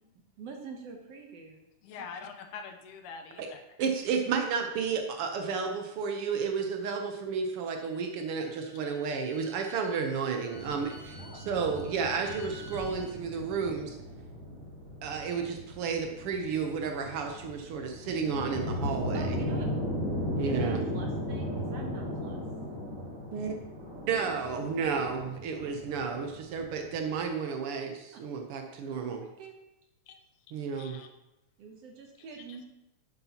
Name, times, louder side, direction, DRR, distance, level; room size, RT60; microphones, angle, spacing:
voice 1, 0.4-1.6 11.2-11.5 18.7-19.7 20.4-22.4 29.2-29.5 31.6-32.7, right 4 dB, 65° right, 3 dB, 1.6 m, -46 dB
voice 2, 1.8-3.8 30.1-30.2 30.7-31.1 32.5-32.6, left 5 dB, 75° left, 5 dB, 2.3 m, -44 dB
voice 3, 3.8-14.0 15.0-19.4 20.4-20.8 23.3-23.6 24.1-29.2 30.5-31.0, right 5 dB, 85° right, 4 dB, 1.2 m, -32 dB
Bowed string instrument, 7.9-13.1, equal, 35° left, 3.3 m, -53 dB
sound 1, 10.5-27.2, left 1 dB, 50° right, 4.8 m, -37 dB
11.0 x 9.8 x 2.9 m, 0.91 s
omnidirectional pair, 3.7 m